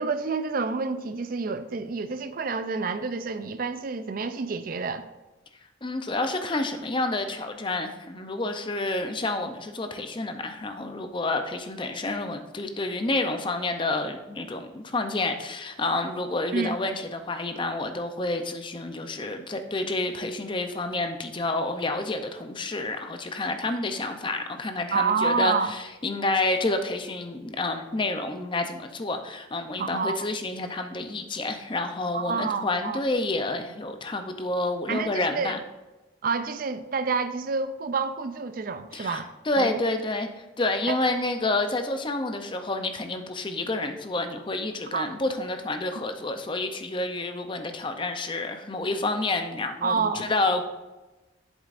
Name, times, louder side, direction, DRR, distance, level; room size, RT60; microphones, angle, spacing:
voice 1, 0.0-5.1 16.5-16.8 24.9-25.7 29.8-30.2 32.1-33.0 34.9-35.5 36.2-39.3 39.6-39.8 40.9-41.0 44.9-45.1 49.8-50.3, right 4 dB, 45° right, 0.4 m, -28 dB
voice 2, 5.8-35.6 38.9-39.2 39.4-50.6, left 2 dB, 25° left, 0.6 m, -29 dB
8.3 x 7.3 x 2.5 m
head